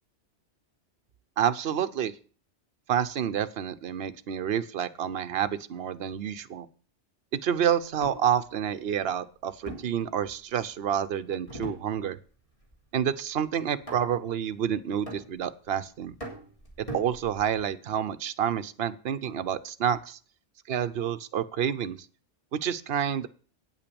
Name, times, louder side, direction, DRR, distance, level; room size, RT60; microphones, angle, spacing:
voice 1, 1.4-2.1 2.9-6.7 7.4-12.2 12.9-16.1 16.8-20.2 20.7-22.0 22.6-23.3, right 9 dB, 60° right, 10 dB, 1.0 m, -29 dB
sound 1, 7.8-8.3 9.7-10.7 11.5-12.3 12.6-13.0 13.9-14.4 15.1-15.7 16.2-17.7, right 1 dB, 30° left, 3.5 m, -41 dB
9.2 x 8.8 x 7.0 m, 0.40 s
omnidirectional pair, 1.2 m